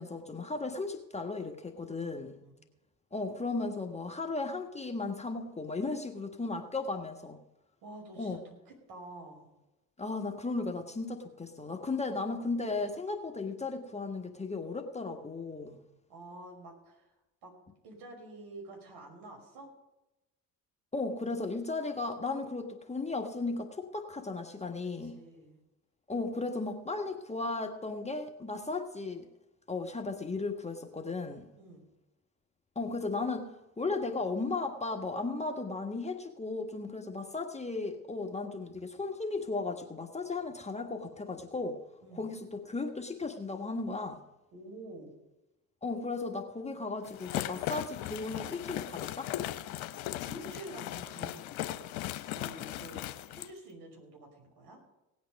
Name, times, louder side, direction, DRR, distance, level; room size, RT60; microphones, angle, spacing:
voice 1, 0.0-2.3 3.1-7.4 8.2-8.4 10.0-15.8 20.9-25.2 26.1-29.3 29.7-31.5 32.7-33.5 33.8-41.8 42.1-44.2 45.8-49.3, left 3 dB, 15° left, 4 dB, 1.5 m, -35 dB
voice 2, 1.8-2.7 6.3-6.5 7.8-9.6 16.1-17.1 17.4-17.5 17.8-19.7 25.0-25.6 31.6-31.9 42.0-42.3 44.5-45.2 49.7-49.9 50.3-51.8 52.3-54.8, right 2 dB, 60° right, 1 dB, 5.4 m, -49 dB
sound 1, 47.0-53.5, left 14 dB, 75° left, 0.9 m, -38 dB
18.0 x 8.6 x 5.3 m, 0.97 s
hypercardioid pair, 65°, 43 cm